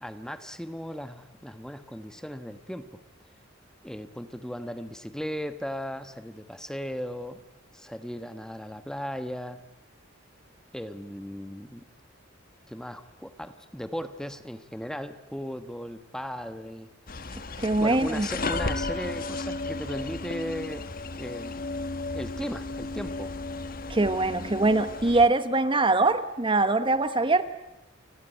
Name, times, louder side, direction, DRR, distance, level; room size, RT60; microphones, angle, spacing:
voice 1, 0.0-3.0 3.8-7.4 7.7-9.6 10.7-11.9 12.7-16.9 17.8-20.9 21.2-21.6 22.1-23.3, equal, 5° left, 10 dB, 1.2 m, -37 dB
sound 1, 17.1-25.3, left 3 dB, 50° left, 1.3 m, -34 dB
voice 2, 17.6-18.3 23.9-27.4, right 2 dB, 25° right, 11 dB, 1.1 m, -23 dB
29.5 x 19.0 x 9.3 m, 0.91 s
head